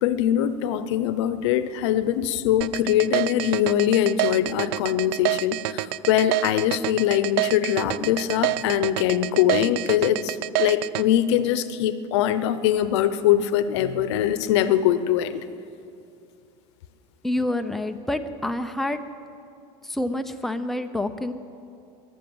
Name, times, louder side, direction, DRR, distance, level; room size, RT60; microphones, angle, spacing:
voice 1, 0.0-15.4, left 11 dB, 85° left, 13 dB, 0.8 m, -22 dB
sound 1, 2.6-11.0, right 17 dB, 70° right, 0.4 m, -26 dB
voice 2, 17.2-19.0 19.8-21.3, left 1 dB, ahead, 7 dB, 0.6 m, -27 dB
14.0 x 11.0 x 8.8 m, 2.5 s
cardioid pair, 155°, 14 cm